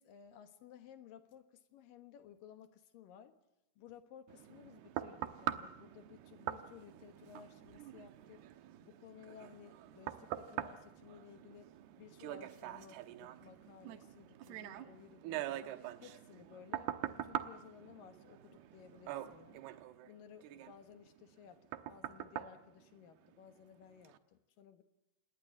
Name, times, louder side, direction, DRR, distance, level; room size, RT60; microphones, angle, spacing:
voice 1, 0.0-3.4 3.8-8.5 8.8-15.6 16.0-19.6 20.0-24.8, left 9 dB, 65° left, 2.3 m, -57 dB
sound 1, 4.3-23.5 24.0-24.2, right 12 dB, 75° right, 2.6 m, -44 dB
28.0 x 20.5 x 7.2 m
omnidirectional pair, 5.6 m